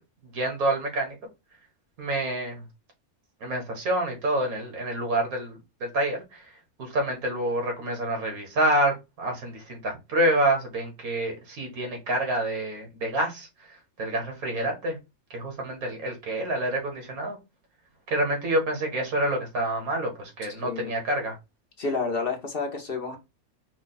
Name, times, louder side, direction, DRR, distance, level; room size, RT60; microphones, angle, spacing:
voice 1, 0.3-1.2 2.0-2.6 3.4-6.5 6.8-13.5 14.0-15.0 15.3-17.4 18.1-21.3, right 1 dB, 80° right, 2 dB, 1.9 m, -27 dB
voice 2, 20.6-20.9 21.8-23.2, left 4 dB, 45° left, 3 dB, 1.0 m, -30 dB
4.8 x 2.3 x 4.0 m, 0.23 s
omnidirectional pair, 1.5 m